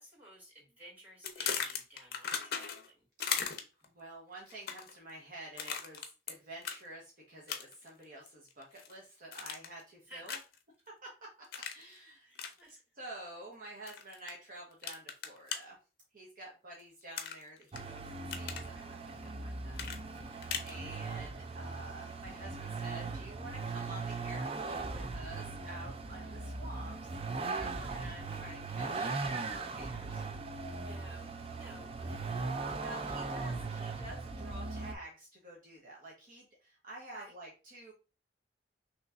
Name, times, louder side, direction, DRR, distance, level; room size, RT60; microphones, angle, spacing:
voice 1, 0.0-3.1 10.0-10.4 12.2-12.8 20.7-21.0 30.7-32.5 37.1-37.3, right 1 dB, 10° right, -6 dB, 2.3 m, -54 dB
sound 1, 1.2-2.9 3.2-3.8 4.5-5.0 5.6-6.3 6.6-6.8 7.5-7.9 8.3-8.9 9.3-9.8 10.3-10.6 11.5-11.8 12.3-12.5 13.9-14.3 14.8-15.6 17.1-17.8 18.1-18.7 19.7-20.7, left 7 dB, 55° left, 0.6 m, -37 dB
voice 2, 3.9-10.4 11.0-11.1 11.7-12.5 13.0-15.8 16.1-29.2 29.5-30.2 32.7-37.9, right 1 dB, 50° right, -3 dB, 1.1 m, -49 dB
Vehicle, 17.7-34.9, right 3 dB, 35° right, 0.4 m, -39 dB
5.4 x 3.0 x 2.5 m, 0.32 s
head